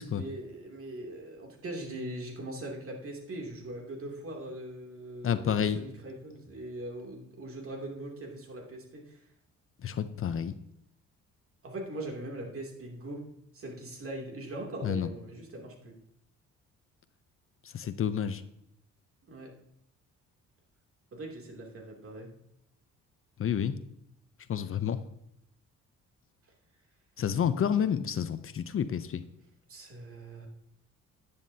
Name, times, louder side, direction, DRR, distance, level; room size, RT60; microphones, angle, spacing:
voice 1, 0.1-9.2 11.6-13.2 13.5-15.9 19.3-19.5 21.1-22.3 29.7-30.5, right 1 dB, 45° right, 0 dB, 2.8 m, -41 dB
voice 2, 5.2-5.8 9.8-10.5 14.8-15.1 17.7-18.4 23.4-23.8 24.5-25.0 27.2-29.2, left 8 dB, 45° left, 12 dB, 0.6 m, -29 dB
10.5 x 9.5 x 2.8 m, 0.77 s
cardioid pair, 90°, 30 cm